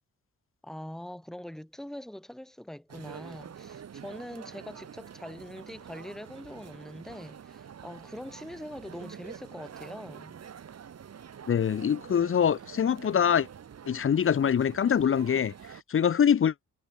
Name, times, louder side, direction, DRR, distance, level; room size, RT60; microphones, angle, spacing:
voice 1, 0.6-10.4, left 1 dB, ahead, 1.7 m, -43 dB
sound 1, 2.9-15.8, right 8 dB, 55° right, 1.2 m, -47 dB
voice 2, 11.5-13.5 13.9-15.5 15.9-16.5, left 8 dB, 45° left, 0.6 m, -24 dB
wide cardioid pair, 110°, 31 cm